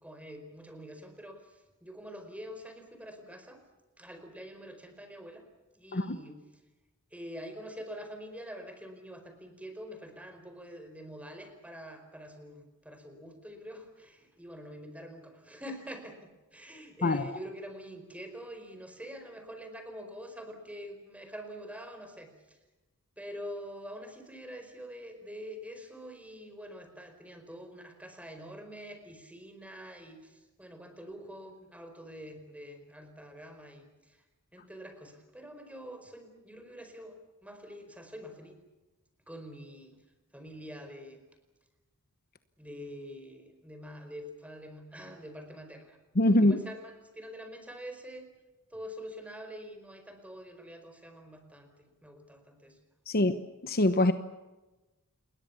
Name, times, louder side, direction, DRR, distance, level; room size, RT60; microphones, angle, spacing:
voice 1, 0.0-3.6 4.0-5.4 5.7-6.4 7.1-22.6 23.2-34.2 34.5-38.6 39.3-40.0 40.3-41.2 42.6-46.0 46.2-48.3 48.7-52.8, equal, 5° right, 4.8 m, -46 dB
voice 2, 46.2-46.6 53.1-53.3 53.6-54.1, left 1 dB, 45° left, 1.1 m, -23 dB
28.5 x 21.5 x 7.2 m
head